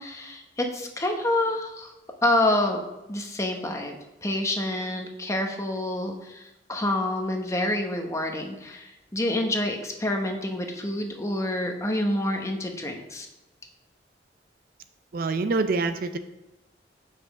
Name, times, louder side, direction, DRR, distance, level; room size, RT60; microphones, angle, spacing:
voice 1, 0.0-1.9 2.2-2.8 3.1-13.3, left 1 dB, 15° left, 3 dB, 0.9 m, -27 dB
voice 2, 15.1-16.2, right 3 dB, 55° right, 9 dB, 0.4 m, -25 dB
6.0 x 5.0 x 6.8 m, 0.99 s
head